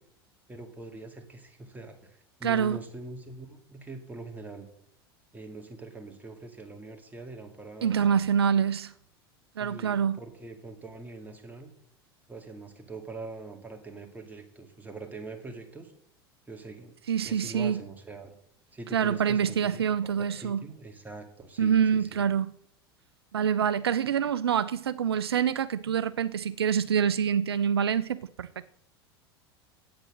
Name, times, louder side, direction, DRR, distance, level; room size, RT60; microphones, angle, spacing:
voice 1, 0.5-4.7 5.3-8.2 9.6-11.7 12.3-15.9 16.5-16.9 17.2-18.3 18.7-22.2, right 2 dB, 10° right, 2.1 m, -43 dB
voice 2, 2.4-2.8 7.8-8.9 9.6-10.2 17.1-17.8 18.9-20.6 21.6-22.5 23.3-28.6, right 8 dB, 75° right, 0.4 m, -26 dB
8.9 x 8.2 x 6.1 m
figure-of-eight pair, 80°, 13 cm